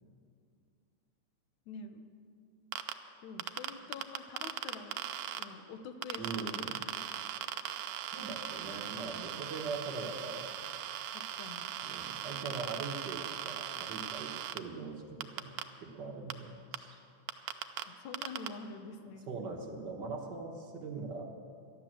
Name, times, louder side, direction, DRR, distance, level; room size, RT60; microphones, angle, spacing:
voice 1, 1.7-2.1 3.2-5.0 5.4-6.6 7.4-7.5 11.1-11.8 17.9-19.3, left 4 dB, 80° left, 8 dB, 2.3 m, -47 dB
sound 1, 2.7-2.9 3.4-5.4 6.0-14.6 15.2-15.6 16.3-16.4 16.7-16.8 17.3-17.8 18.1-18.5, right 11 dB, 80° right, 1.8 m, -39 dB
voice 2, 6.2-6.8 8.1-10.5 11.8-15.5 15.9-17.0 19.3-21.2, right 3 dB, 55° right, 1 dB, 1.3 m, -41 dB
12.5 x 11.5 x 7.5 m, 2.3 s
omnidirectional pair, 3.4 m